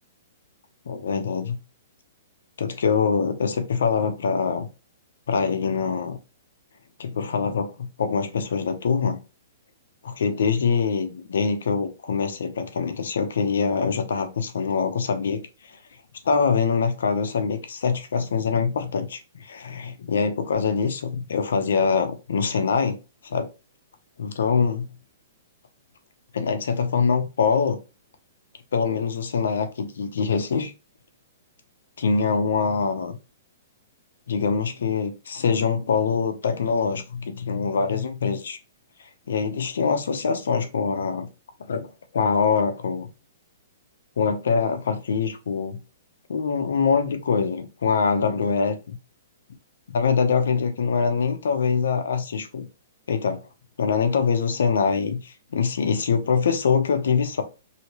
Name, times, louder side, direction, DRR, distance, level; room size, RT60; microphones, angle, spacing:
voice 1, 0.9-1.6 2.6-4.7 5.3-6.2 7.0-9.2 10.0-15.4 16.2-23.0 23.2-23.5 24.2-24.9 26.3-27.8 28.7-30.7 32.0-33.2 34.3-38.6 39.3-41.3 41.7-41.9 42.1-43.1 44.2-45.8 46.3-49.0 49.9-52.7 53.1-53.4 53.8-57.4, left 5 dB, 80° left, 0.6 m, -24 dB
2.9 x 2.8 x 3.0 m
hypercardioid pair, 170°, 0 cm